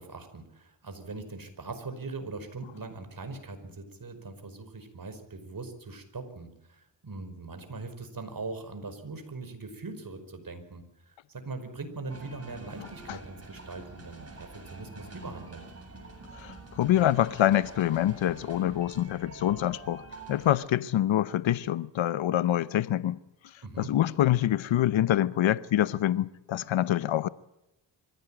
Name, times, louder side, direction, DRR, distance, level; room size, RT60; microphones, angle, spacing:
voice 1, 0.0-15.7 23.6-23.9, right 3 dB, 50° right, 5.2 m, -41 dB
sound 1, 12.1-20.6, right 3 dB, 30° right, 7.5 m, -47 dB
voice 2, 16.3-20.0 20.3-23.2 23.8-27.3, left 12 dB, 85° left, 0.8 m, -26 dB
24.5 x 16.0 x 8.9 m
cardioid pair, 60°, 45 cm